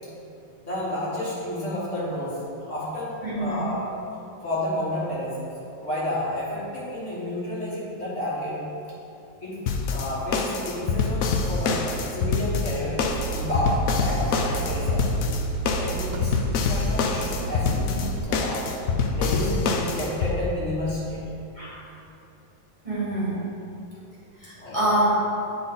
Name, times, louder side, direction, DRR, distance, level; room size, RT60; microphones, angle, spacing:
voice 1, 0.6-2.4 2.6-3.9 4.4-8.6 9.4-9.6 9.9-15.1 15.8-16.4 16.7-18.7 19.1-21.2 24.6-24.8, left 1 dB, 40° left, -8 dB, 1.7 m, -30 dB
voice 2, 3.2-3.7 21.6-21.7 22.8-23.4 24.4-25.1, right 1 dB, 30° right, -9 dB, 1.3 m, -25 dB
sound 1, 9.7-20.3, left 4 dB, 75° left, 0.7 m, -25 dB
sound 2, 13.0-18.2, right 3 dB, 80° right, 1.3 m, -32 dB
9.0 x 4.4 x 3.9 m, 2.8 s
omnidirectional pair, 2.0 m